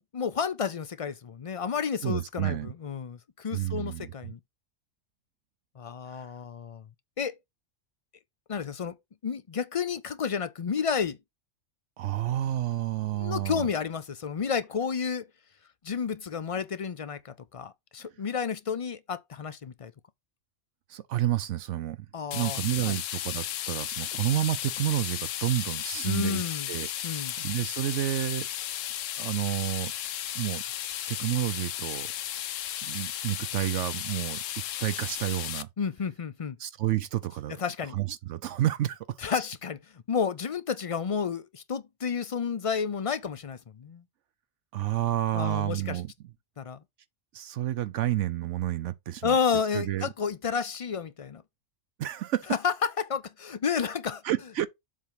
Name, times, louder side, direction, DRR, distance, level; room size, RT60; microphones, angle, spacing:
voice 1, 0.1-4.4 5.8-6.8 7.2-7.4 8.5-8.9 9.2-11.2 13.0-15.3 15.8-19.9 22.1-23.0 26.0-26.7 27.0-27.3 35.8-36.6 37.6-38.0 39.2-44.0 45.3-46.0 46.6-46.8 49.2-51.4 52.5-54.2, left 6 dB, 45° left, 0.4 m, -31 dB
voice 2, 2.0-2.7 3.5-4.1 6.1-6.3 12.0-13.7 20.9-22.0 22.3-28.5 29.2-29.9 30.3-30.6 31.1-32.1 32.8-34.4 34.8-35.7 36.6-37.6 37.9-39.2 44.7-46.1 47.3-49.4 49.7-50.1 52.0-52.5 54.2-54.7, right 13 dB, 75° right, 0.9 m, -30 dB
sound 1, 22.3-35.6, left 11 dB, 85° left, 1.0 m, -34 dB
7.5 x 3.5 x 5.7 m
omnidirectional pair, 1.3 m